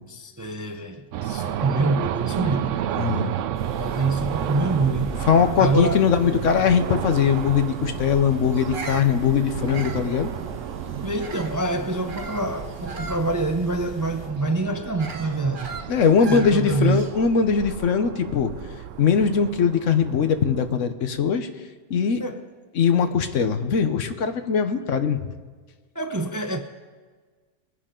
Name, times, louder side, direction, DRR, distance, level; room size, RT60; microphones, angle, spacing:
voice 1, 0.1-2.8 3.8-5.2 5.6-6.0 11.0-15.7 16.3-17.1 22.2-22.4 25.9-26.6, right 2 dB, 25° right, 0.4 m, -26 dB
sound 1, 1.1-20.8, right 10 dB, 80° right, 0.9 m, -32 dB
voice 2, 2.9-3.3 5.2-10.3 15.9-18.5 19.0-21.5 21.9-22.2 22.7-25.3, left 6 dB, 80° left, 1.2 m, -21 dB
sound 2, 3.5-14.3, right 1 dB, 30° left, 5.4 m, -41 dB
Bird vocalization bird call bird song, 8.5-11.6 12.1-17.4, right 3 dB, 45° right, 1.0 m, -39 dB
22.5 x 9.8 x 3.8 m
omnidirectional pair, 1.3 m